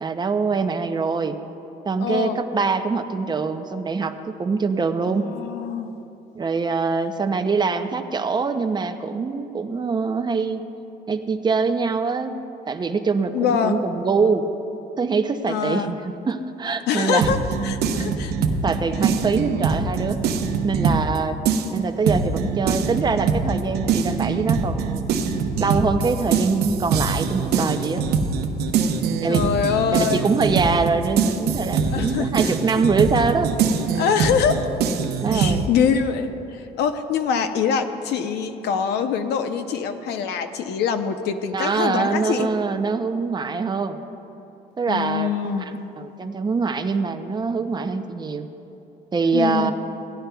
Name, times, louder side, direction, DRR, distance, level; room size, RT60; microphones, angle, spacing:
voice 1, 0.0-1.4 1.9-5.3 6.3-10.6 11.1-12.4 12.7-14.5 15.0-16.0 16.3-17.3 18.6-20.2 20.6-21.4 21.7-25.1 25.6-28.0 29.2-29.5 29.9-33.5 35.2-35.7 41.5-44.0 44.8-45.6 46.0-48.5 49.1-49.7, right 4 dB, 25° right, 8 dB, 0.5 m, -24 dB
voice 2, 2.0-2.4 5.1-5.9 13.3-13.8 15.5-15.9 16.9-17.4 17.6-18.3 29.3-30.3 31.9-32.8 33.9-34.6 35.3-42.5 44.9-45.7 49.3-49.7, left 7 dB, 80° left, 8 dB, 0.7 m, -24 dB
sound 1, 17.2-21.2 21.4-35.6, right 5 dB, 70° right, 0.8 m, -23 dB
17.0 x 11.0 x 2.3 m, 3.0 s
cardioid pair, 110°, 17 cm